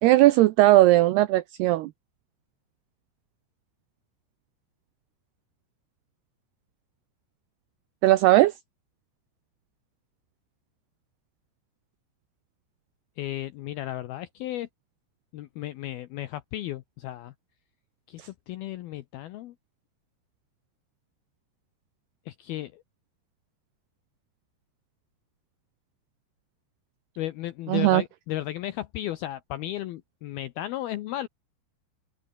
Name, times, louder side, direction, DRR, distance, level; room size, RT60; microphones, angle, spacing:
voice 1, 0.0-1.9 8.0-8.5 27.7-28.0, right 16 dB, 80° right, 2.3 m, -18 dB
voice 2, 13.2-14.7 15.3-17.3 18.1-19.5 22.3-22.8 27.2-31.3, left 14 dB, 85° left, 2.2 m, -34 dB
open air
omnidirectional pair, 5.5 m